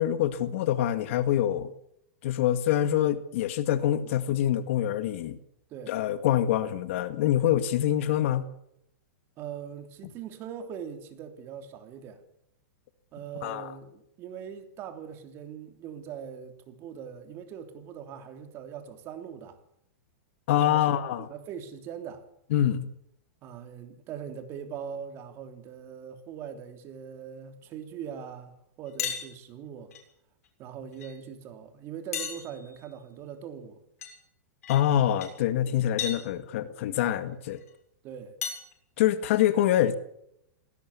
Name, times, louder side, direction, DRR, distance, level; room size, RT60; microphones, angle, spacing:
voice 1, 0.0-1.7 2.2-5.4 5.9-8.5 13.4-13.7 20.5-21.3 22.5-22.9 34.7-37.6 39.0-39.9, left 11 dB, 55° left, 1.9 m, -25 dB
voice 2, 9.4-12.2 13.1-19.6 20.5-22.2 23.4-29.9 30.6-33.8 34.9-35.1 35.6-35.8 38.0-38.4, right 8 dB, 30° right, 3.3 m, -41 dB
sound 1, 29.0-29.3 29.9-30.0 31.0-31.1 32.1-32.8 34.0-34.1 34.6-34.8 35.2-35.3 36.0-36.2 37.6-37.7 38.4-38.7, left 7 dB, 80° left, 6.9 m, -34 dB
19.5 x 18.0 x 8.4 m
supercardioid pair, 155°, 8 cm